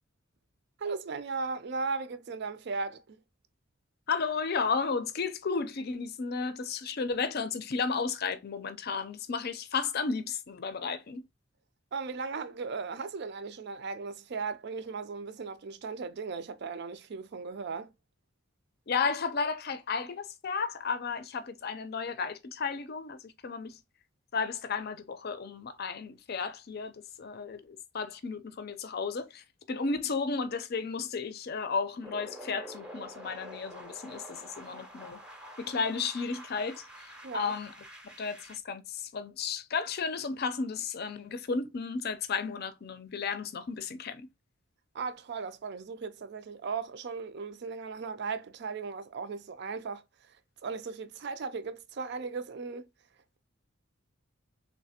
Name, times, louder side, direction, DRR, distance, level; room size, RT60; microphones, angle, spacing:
voice 1, 0.8-3.2 11.9-17.9 37.2-37.5 44.9-50.4 50.6-52.9, right 4 dB, 55° right, 0.4 m, -37 dB
voice 2, 4.1-11.2 18.9-23.8 24.3-35.2 35.6-37.7 38.0-44.3, left 5 dB, 50° left, 0.5 m, -33 dB
sound 1, 32.0-38.6, equal, 5° right, 0.6 m, -47 dB
3.3 x 3.2 x 2.8 m
head